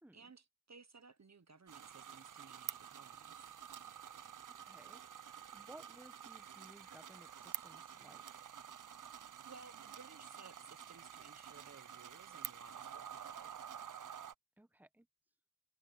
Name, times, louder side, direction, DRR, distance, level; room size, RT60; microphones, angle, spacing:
voice 1, 0.1-3.5 9.4-13.6, right 4 dB, 50° right, 1.0 m, -59 dB
sound 1, 1.7-14.3, right 8 dB, 70° right, 0.5 m, -50 dB
voice 2, 4.5-5.0 5.5-8.2 14.6-15.1, right 1 dB, 5° right, 1.0 m, -59 dB
wide cardioid pair, 55°, 33 cm